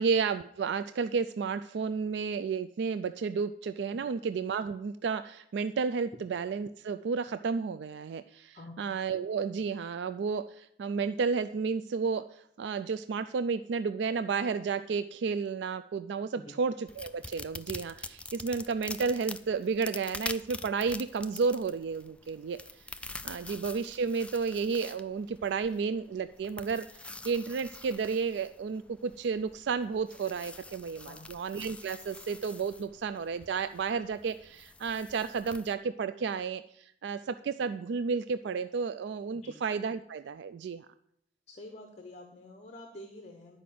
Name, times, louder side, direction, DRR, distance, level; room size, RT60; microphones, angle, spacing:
voice 1, 0.0-22.6 23.2-40.9, right 5 dB, 65° right, 11 dB, 0.3 m, -32 dB
sound 1, 16.9-35.7, left 2 dB, 5° left, 0.3 m, -46 dB
voice 2, 41.5-43.6, left 1 dB, 40° left, 4 dB, 1.2 m, -48 dB
11.0 x 5.0 x 7.6 m, 0.73 s
head